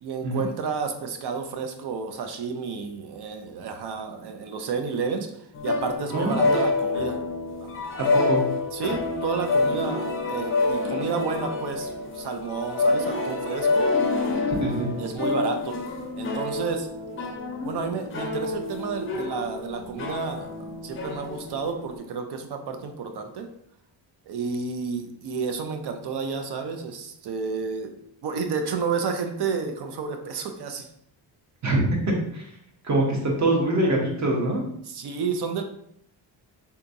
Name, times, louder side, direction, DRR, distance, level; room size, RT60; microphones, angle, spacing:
voice 1, 0.0-5.3 5.6-7.2 7.6-7.8 8.7-13.9 15.0-16.9 17.6-20.5 20.8-23.5 24.3-27.9 28.2-30.9 33.1-33.2 34.9-35.6, right 5 dB, 60° right, 6 dB, 0.6 m, -31 dB
sound 1, 5.5-22.0, left 3 dB, 30° left, 0.5 m, -27 dB
voice 2, 6.1-6.5 8.0-8.4 14.6-14.9 31.6-32.0 32.3-32.4 32.8-34.6, right 1 dB, 40° right, -1 dB, 0.9 m, -24 dB
3.5 x 2.8 x 2.6 m, 0.72 s
cardioid pair, 135°, 45 cm